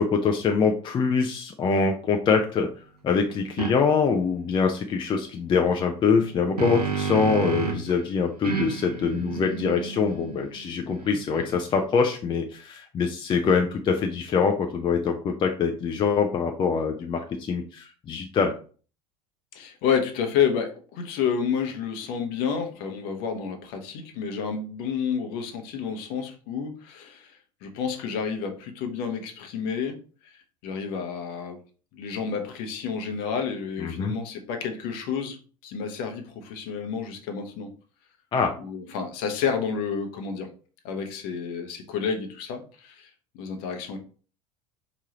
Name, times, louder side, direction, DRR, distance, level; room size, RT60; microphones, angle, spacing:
voice 1, 0.0-2.7 3.0-18.5 33.8-34.1 38.3-38.5, left 5 dB, 25° left, 4 dB, 0.5 m, -24 dB
sound 1, 3.6-3.7 6.1-7.9 8.4-11.8, right 6 dB, 90° right, 0.7 m, -31 dB
voice 2, 19.5-30.0 30.2-30.4 30.6-31.6 31.9-35.4 35.6-37.7 38.6-40.5 40.8-44.0, left 6 dB, 50° left, 5 dB, 0.9 m, -30 dB
4.6 x 3.0 x 2.9 m, 0.39 s
figure-of-eight pair, 70°, 19 cm